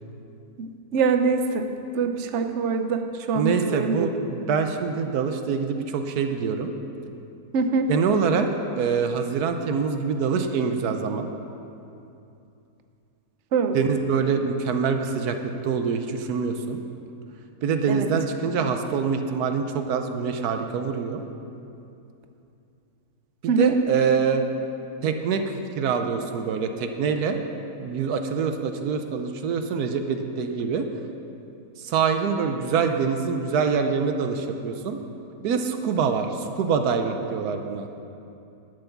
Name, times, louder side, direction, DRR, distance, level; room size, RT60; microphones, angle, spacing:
voice 1, 0.6-4.1 7.5-7.9 13.5-13.8 17.9-18.1 23.5-23.7, right 5 dB, 55° right, 6 dB, 0.9 m, -24 dB
voice 2, 3.3-6.7 7.9-8.5 8.8-11.3 13.7-16.8 17.6-21.2 23.4-24.4 25.0-27.4 27.8-30.9 31.8-35.0 35.4-37.9, right 6 dB, 75° right, 6 dB, 1.2 m, -25 dB
11.5 x 6.9 x 7.0 m, 2.7 s
omnidirectional pair, 1.7 m